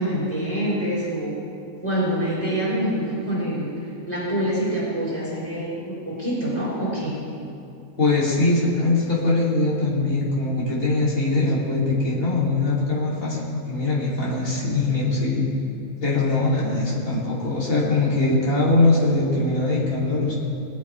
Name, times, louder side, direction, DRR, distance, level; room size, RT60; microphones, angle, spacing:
voice 1, 0.0-1.4 1.8-3.7 4.1-7.2, right 1 dB, 10° left, -8 dB, 4.2 m, -25 dB
voice 2, 8.0-15.4 16.0-20.3, left 2 dB, 70° left, -7 dB, 3.5 m, -22 dB
21.0 x 9.0 x 4.7 m, 2.6 s
omnidirectional pair, 1.5 m